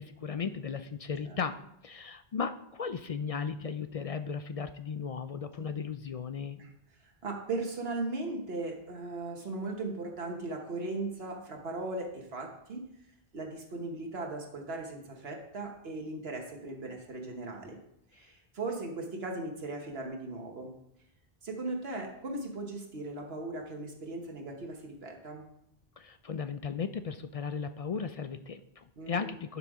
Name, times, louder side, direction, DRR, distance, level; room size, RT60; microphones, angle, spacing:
voice 1, 0.0-1.5 1.8-6.6 26.0-29.6, left 6 dB, 50° left, 10 dB, 0.4 m, -36 dB
voice 2, 7.0-12.8 13.3-17.8 18.1-20.7 21.4-25.5 29.0-29.3, right 2 dB, 75° right, 2 dB, 1.5 m, -38 dB
11.5 x 5.9 x 4.8 m, 0.78 s
omnidirectional pair, 1.0 m